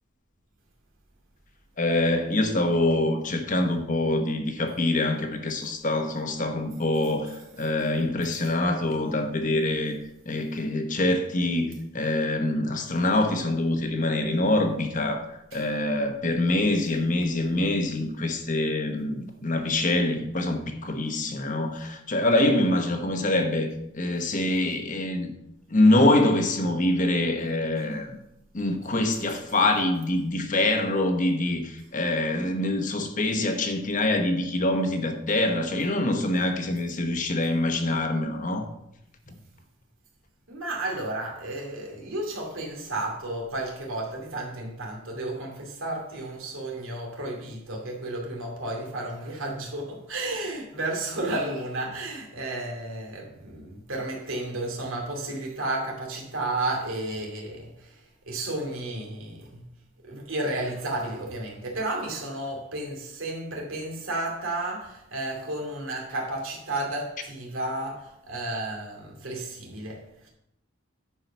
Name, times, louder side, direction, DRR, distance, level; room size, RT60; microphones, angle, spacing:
voice 1, 1.8-10.0 10.3-15.3 15.5-23.7 23.9-25.3 25.7-28.2 28.5-38.7, left 1 dB, 40° left, 1.1 m, -25 dB
voice 2, 40.5-58.0 58.3-59.6 60.0-70.3, right 2 dB, 85° right, 2.4 m, -32 dB
10.5 x 4.8 x 5.6 m
head